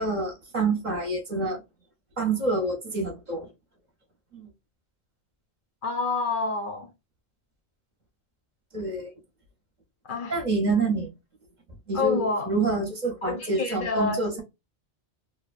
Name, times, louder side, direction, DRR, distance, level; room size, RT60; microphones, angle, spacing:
voice 1, 0.0-1.6 2.2-3.5 4.3-4.5 8.7-9.1 10.3-11.1 11.9-14.4, right 3 dB, 45° right, 0.8 m, -27 dB
voice 2, 5.8-6.9 10.0-10.4 11.9-12.5 13.2-14.4, left 3 dB, 60° left, 0.7 m, -28 dB
2.7 x 2.1 x 2.3 m
omnidirectional pair, 1.1 m